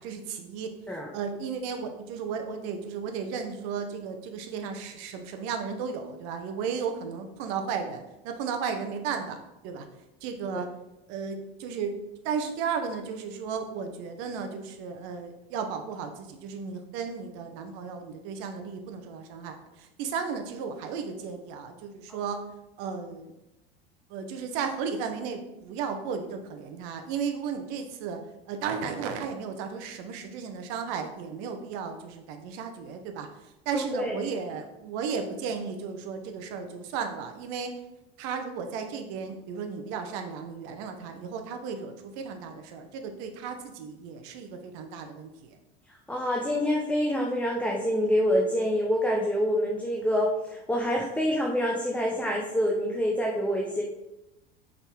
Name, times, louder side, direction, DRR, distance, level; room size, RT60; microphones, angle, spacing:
voice 1, 0.0-0.8 1.1-9.9 10.2-10.7 11.1-12.0 12.2-22.4 22.8-23.3 24.1-28.2 28.5-37.8 38.2-45.6, right 6 dB, 55° right, 6 dB, 1.0 m, -34 dB
voice 2, 33.7-34.1 46.1-53.8, equal, 5° left, -1 dB, 0.8 m, -26 dB
5.5 x 3.9 x 4.5 m, 0.93 s
hypercardioid pair, 80°, 31 cm